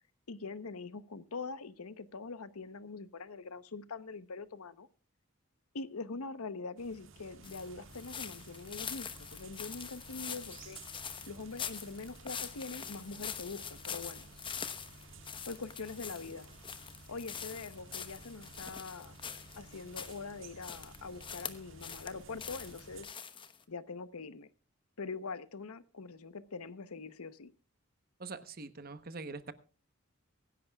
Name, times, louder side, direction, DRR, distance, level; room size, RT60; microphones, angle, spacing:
voice 1, 0.3-4.9 5.7-10.8 11.3-14.3 15.5-16.5 17.1-19.2 19.6-23.1 23.7-24.5 25.0-27.5, left 4 dB, 85° left, 14 dB, 0.9 m, -43 dB
sound 1, 6.8-23.0, right 3 dB, 60° right, 1.7 m, -54 dB
sound 2, 7.4-20.2 20.6-22.1 22.4-23.6, left 7 dB, 20° left, 1.0 m, -44 dB
voice 2, 28.2-29.5, right 3 dB, 40° right, 12 dB, 1.0 m, -43 dB
24.0 x 11.0 x 2.3 m, 0.39 s
head